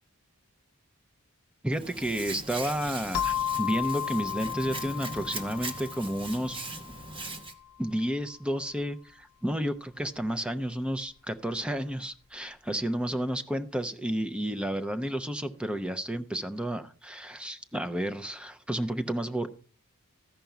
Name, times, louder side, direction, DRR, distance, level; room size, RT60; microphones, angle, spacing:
voice 1, 1.6-6.7 7.8-19.5, right 1 dB, 5° right, 9 dB, 0.6 m, -31 dB
Hands, 1.7-7.5, right 2 dB, 25° right, 1.2 m, -40 dB
sound 1, 3.1-7.5, left 10 dB, 70° left, 0.7 m, -34 dB
14.5 x 5.2 x 5.7 m, 0.39 s
head